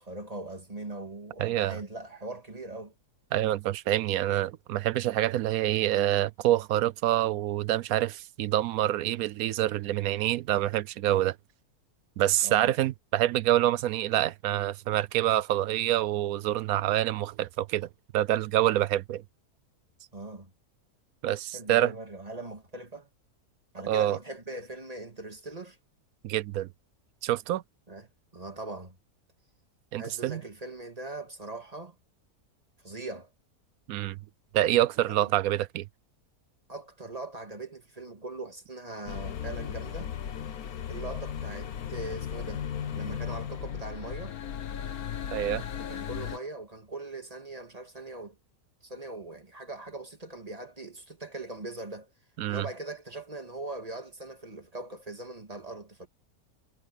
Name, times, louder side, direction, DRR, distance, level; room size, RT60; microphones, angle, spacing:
voice 1, 0.0-2.9 12.4-12.7 20.1-20.5 21.5-23.1 23.7-25.8 27.9-29.0 30.0-32.0 32.8-33.3 35.1-35.3 36.7-40.1 40.9-42.7 42.9-44.4 45.8-48.4 48.8-52.1 52.5-56.1, right 2 dB, 25° right, 2.2 m, -41 dB
voice 2, 1.4-1.8 3.3-11.4 12.2-17.9 18.1-19.2 21.2-21.9 23.9-24.2 26.2-26.7 27.2-27.6 29.9-30.4 33.9-34.2 34.5-35.9 45.3-45.6 52.4-52.7, right 13 dB, 75° right, 1.0 m, -26 dB
sound 1, 39.1-46.4, left 8 dB, 75° left, 1.5 m, -36 dB
omnidirectional pair, 1.6 m